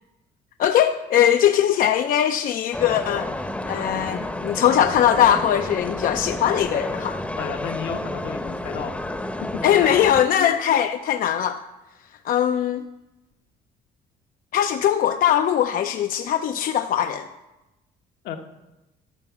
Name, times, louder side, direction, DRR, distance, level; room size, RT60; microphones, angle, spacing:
voice 1, 0.6-3.3 3.7-7.2 9.6-11.6 12.2-12.8 14.5-17.2, left 10 dB, 55° left, 8 dB, 0.5 m, -20 dB
sound 1, 2.7-10.2, left 1 dB, 5° left, 0.8 m, -30 dB
voice 2, 7.4-9.0 10.4-10.5 18.2-18.4, left 7 dB, 75° left, 5 dB, 1.2 m, -32 dB
12.0 x 5.4 x 7.2 m, 1.0 s
cardioid pair, 110°, 17 cm